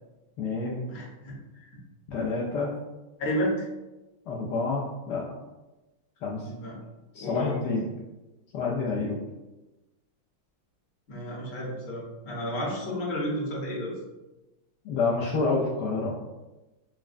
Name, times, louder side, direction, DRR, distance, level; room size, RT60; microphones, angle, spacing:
voice 1, 0.4-0.8 2.1-2.7 4.3-5.2 6.2-6.5 7.1-7.9 8.5-9.2 14.8-16.1, left 4 dB, 75° left, -4 dB, 1.0 m, -28 dB
voice 2, 0.9-1.7 3.2-3.7 6.4-6.8 7.1-7.6 11.1-14.0, equal, 50° left, -4 dB, 1.2 m, -32 dB
5.9 x 2.1 x 2.4 m, 1.1 s
omnidirectional pair, 2.4 m